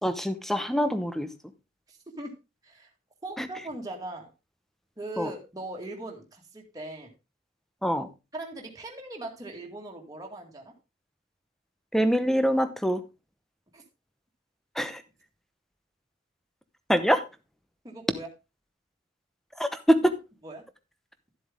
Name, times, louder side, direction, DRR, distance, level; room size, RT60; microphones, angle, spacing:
voice 1, 0.0-1.3 5.2-5.3 7.8-8.1 11.9-13.0 14.8-15.0 16.9-17.2 19.6-20.1, equal, ahead, 11 dB, 0.9 m, -24 dB
voice 2, 1.9-2.3 2.6-2.9 3.2-4.3 5.0-7.1 8.3-10.7 13.7-13.8 17.8-18.3 20.4-20.6, right 1 dB, 20° right, 0 dB, 2.1 m, -39 dB
12.5 x 7.8 x 3.6 m, 0.26 s
head